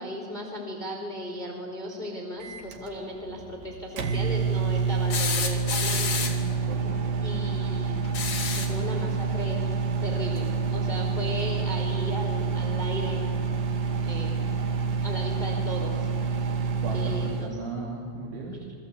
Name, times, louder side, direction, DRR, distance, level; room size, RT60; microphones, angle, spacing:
voice 1, 0.0-6.8 7.2-8.0 8.5-13.3 14.0-14.5 14.8-16.1 16.3-16.5 16.9-17.6 18.6-18.7, equal, 10° left, 1 dB, 3.6 m, -36 dB
Microwave oven, 2.4-17.5, right 5 dB, 55° right, 3.0 m, -28 dB
sound 1, 5.1-6.5 8.0-8.8 10.5-10.6 12.0-12.1, left 5 dB, 40° left, 3.4 m, -30 dB
voice 2, 6.4-7.1 16.8-17.0 17.4-18.6, right 3 dB, 75° right, -2 dB, 5.3 m, -37 dB
29.5 x 24.5 x 8.3 m, 2.2 s
omnidirectional pair, 5.5 m